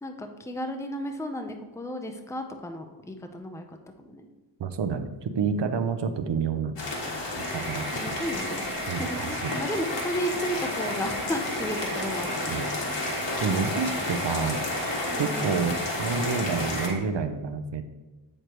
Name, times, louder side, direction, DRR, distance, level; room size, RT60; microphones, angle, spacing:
voice 1, 0.0-4.3 7.9-12.6 15.1-15.6, equal, 5° left, 5 dB, 0.7 m, -34 dB
voice 2, 4.6-6.8 7.4-8.2 8.9-9.5 12.5-12.7 13.4-14.6 15.2-17.8, right 5 dB, 75° right, 9 dB, 0.7 m, -29 dB
sound 1, 6.8-16.9, left 2 dB, 85° left, 1.5 m, -31 dB
sound 2, 7.4-17.0, right 2 dB, 55° right, 2.4 m, -39 dB
8.0 x 6.6 x 3.0 m, 1.2 s
wide cardioid pair, 80°, 43 cm